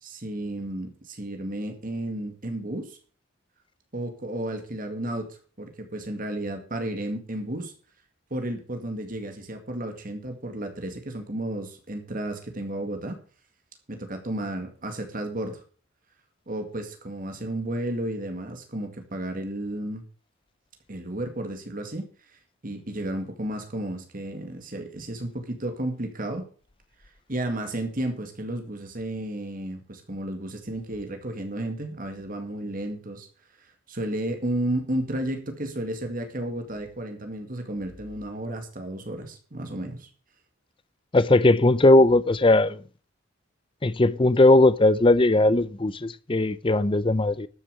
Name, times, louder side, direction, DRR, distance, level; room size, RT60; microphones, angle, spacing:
voice 1, 0.0-3.0 3.9-7.7 8.3-13.2 13.9-15.6 16.5-20.0 20.9-22.1 22.6-26.5 27.3-33.3 33.6-40.1, right 1 dB, 40° right, 2.0 m, -32 dB
voice 2, 41.1-42.8 43.8-47.5, left 2 dB, 25° left, 0.6 m, -19 dB
13.0 x 7.1 x 6.4 m
head